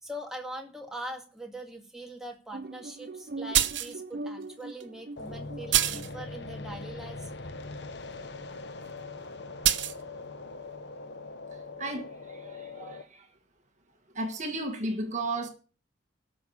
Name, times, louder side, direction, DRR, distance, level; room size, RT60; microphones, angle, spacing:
voice 1, 0.0-7.3, right 1 dB, 5° right, 2.1 m, -42 dB
sound 1, 2.5-6.2, right 2 dB, 55° right, 0.5 m, -41 dB
sound 2, 3.5-3.9 4.8-4.9 5.7-6.1 9.6-9.9, right 12 dB, 75° right, 1.0 m, -25 dB
sound 3, 5.2-13.0, left 3 dB, 60° left, 1.0 m, -41 dB
voice 2, 11.5-13.3 14.1-15.5, right 2 dB, 35° right, 1.6 m, -34 dB
13.0 x 6.2 x 8.5 m
head